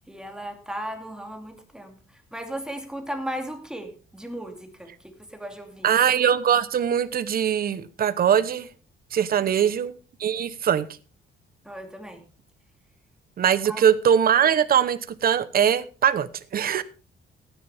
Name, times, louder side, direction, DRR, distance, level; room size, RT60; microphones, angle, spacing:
voice 1, 0.1-5.9 9.4-9.7 11.6-12.2 13.7-13.9, equal, 5° right, 2.5 m, -36 dB
voice 2, 5.8-8.7 9.1-9.9 10.2-10.9 13.4-16.8, right 8 dB, 45° right, 0.9 m, -21 dB
15.5 x 10.5 x 3.5 m
cardioid pair, 140°, 21 cm